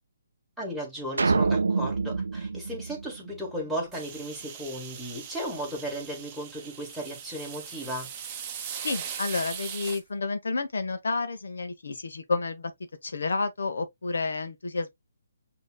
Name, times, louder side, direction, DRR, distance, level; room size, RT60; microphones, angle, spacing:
voice 1, 0.6-8.1, equal, ahead, 1.7 m, -35 dB
sound 1, 1.2-3.7, right 4 dB, 90° right, 0.3 m, -26 dB
sound 2, 3.9-10.0, right 8 dB, 25° right, 0.8 m, -40 dB
voice 2, 8.8-12.7 13.0-14.9, left 3 dB, 80° left, 1.0 m, -30 dB
6.5 x 3.0 x 2.2 m
hypercardioid pair, 160°, 0 cm